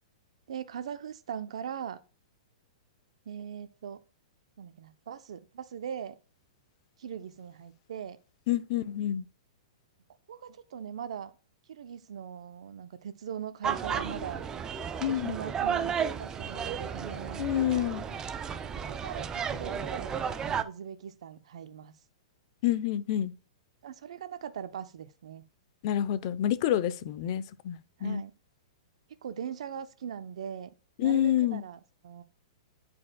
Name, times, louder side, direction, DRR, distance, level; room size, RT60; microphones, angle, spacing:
voice 1, 0.5-2.0 3.3-4.0 4.6-6.2 7.0-8.2 10.3-11.3 11.7-14.4 15.1-18.0 18.9-20.1 20.4-21.9 23.8-25.4 28.0-28.3 29.2-30.7 31.0-32.2, right 8 dB, 70° right, 0.8 m, -40 dB
voice 2, 8.5-9.2 15.0-15.4 17.4-18.1 22.6-23.3 25.8-28.2 31.0-31.6, left 11 dB, 50° left, 0.8 m, -28 dB
sound 1, 13.6-20.6, right 7 dB, 20° right, 0.5 m, -33 dB
11.0 x 4.8 x 2.3 m
hypercardioid pair, 130°, 3 cm